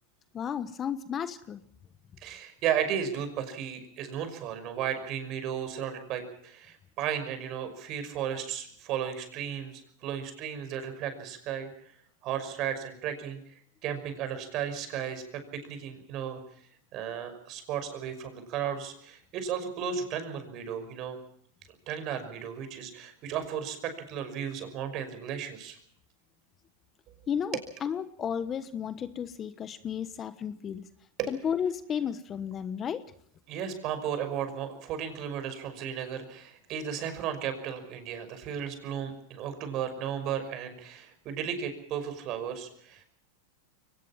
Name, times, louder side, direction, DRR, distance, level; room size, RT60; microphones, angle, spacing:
voice 1, 0.3-1.6 27.3-30.9 31.3-33.0, left 8 dB, 25° left, 12 dB, 1.2 m, -33 dB
voice 2, 2.2-11.7 12.2-13.4 13.8-16.4 16.9-21.2 21.9-25.8 31.2-31.3 33.5-43.0, right 8 dB, 45° right, 8 dB, 5.8 m, -34 dB
23.0 x 19.0 x 7.4 m, 0.64 s
supercardioid pair, 130°, 0 cm